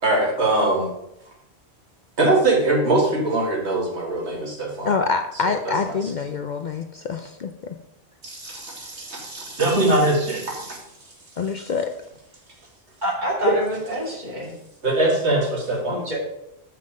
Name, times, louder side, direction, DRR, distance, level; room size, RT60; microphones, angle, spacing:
voice 1, 0.0-0.9 2.2-4.9 5.6-6.0 8.2-10.8 13.4-13.5 14.8-16.0, right 2 dB, 80° right, -1 dB, 2.2 m, -22 dB
voice 2, 4.8-7.8 11.4-11.9, left 4 dB, 55° left, 7 dB, 0.6 m, -26 dB
voice 3, 13.0-14.5 15.9-16.2, equal, 40° right, -4 dB, 2.9 m, -27 dB
7.4 x 5.9 x 4.9 m, 0.81 s
omnidirectional pair, 1.1 m